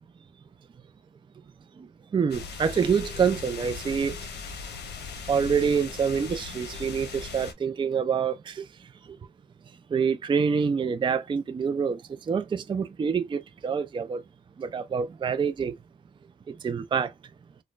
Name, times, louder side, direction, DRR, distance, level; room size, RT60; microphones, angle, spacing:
voice 1, 2.1-4.2 5.3-8.6 9.9-12.0 12.3-14.2 14.6-15.7 16.6-17.1, right 6 dB, 25° right, 0.4 m, -26 dB
sound 1, 2.3-7.5, left 5 dB, 70° left, 0.9 m, -39 dB
4.2 x 2.1 x 2.4 m
cardioid pair, 90°, 18 cm